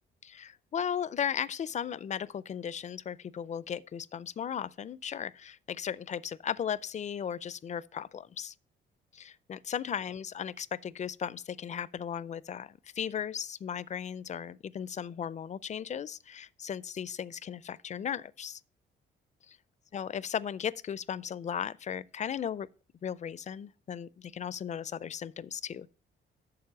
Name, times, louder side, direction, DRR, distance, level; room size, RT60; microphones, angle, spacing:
voice 1, 0.2-8.5 9.1-18.6 19.9-22.7 23.0-25.9, left 8 dB, 35° left, 0.4 m, -36 dB
6.8 x 6.8 x 5.6 m
cardioid pair, 90°, 20 cm